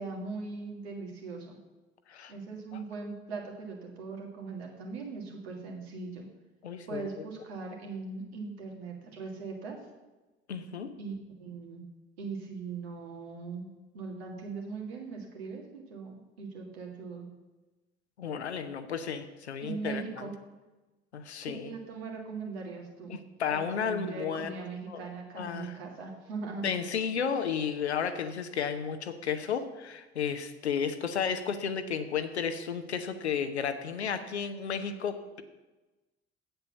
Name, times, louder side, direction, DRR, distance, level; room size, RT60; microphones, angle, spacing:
voice 1, 0.0-1.6 2.3-6.2 6.9-9.8 11.0-11.1 11.4-11.8 12.2-13.7 13.9-17.3 19.6-20.3 21.4-23.1 23.5-26.7, right 4 dB, 75° right, 1 dB, 2.0 m, -40 dB
voice 2, 6.6-7.0 10.5-10.9 18.2-20.3 21.1-21.7 23.1-24.5 24.9-25.0 25.3-25.7 26.6-35.4, left 7 dB, 85° left, 9 dB, 0.8 m, -33 dB
8.1 x 7.9 x 7.1 m, 1.1 s
figure-of-eight pair, 55°, 32 cm